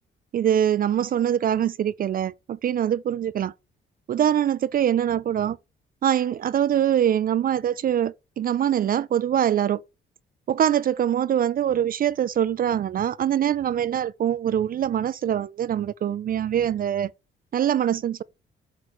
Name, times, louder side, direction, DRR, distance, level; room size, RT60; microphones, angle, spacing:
voice 1, 0.3-3.5 4.1-5.6 6.0-9.8 10.5-17.1 17.5-18.2, right 10 dB, 45° right, 0.4 m, -23 dB
8.3 x 3.2 x 6.5 m
cardioid pair, 90°, 20 cm